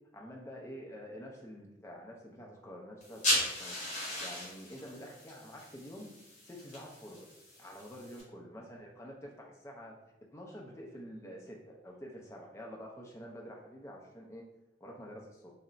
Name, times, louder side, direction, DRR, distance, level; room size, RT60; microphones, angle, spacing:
voice 1, 0.1-3.8 4.2-6.1 6.4-7.3 7.6-9.9 10.3-14.4 14.8-15.5, equal, 15° left, -1 dB, 0.4 m, -47 dB
sound 1, 3.0-8.2, left 1 dB, 40° left, 0.9 m, -37 dB
2.3 x 2.0 x 3.8 m, 0.92 s
head